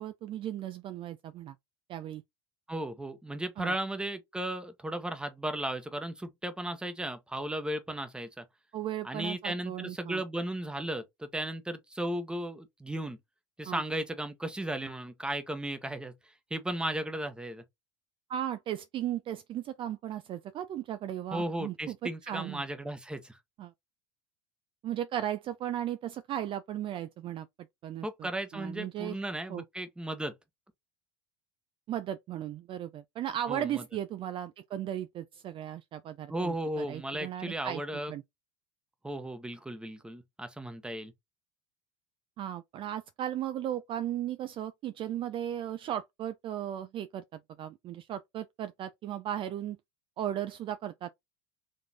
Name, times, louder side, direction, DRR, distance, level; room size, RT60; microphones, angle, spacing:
voice 1, 0.0-1.5 1.9-2.2 3.6-3.7 8.7-10.2 13.7-13.8 18.3-22.6 23.6-23.7 24.8-27.5 27.8-29.2 29.5-29.6 31.9-37.8 38.1-38.2 42.4-49.8 50.2-51.1, right 11 dB, 40° right, 0.4 m, -36 dB
voice 2, 2.7-8.4 9.0-13.2 13.6-16.1 16.5-17.6 21.3-23.4 28.0-30.3 33.5-33.8 36.3-38.1 39.0-41.1, right 1 dB, 5° right, 0.9 m, -35 dB
4.2 x 3.1 x 2.8 m
hypercardioid pair, 75°, 14 cm